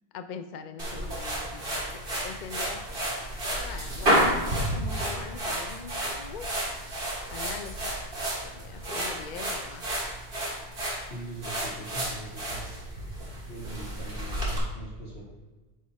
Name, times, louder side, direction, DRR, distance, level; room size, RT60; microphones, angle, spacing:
voice 1, 0.1-2.8 3.5-6.6 7.3-7.8 8.4-9.8, left 6 dB, 55° left, 9 dB, 0.5 m, -42 dB
sound 1, 0.8-14.6, right 1 dB, 60° right, 2.1 m, -31 dB
voice 2, 11.1-12.7 13.4-15.2, right 1 dB, 75° left, -6 dB, 2.5 m, -41 dB
9.1 x 4.2 x 4.7 m, 1.2 s
omnidirectional pair, 1.1 m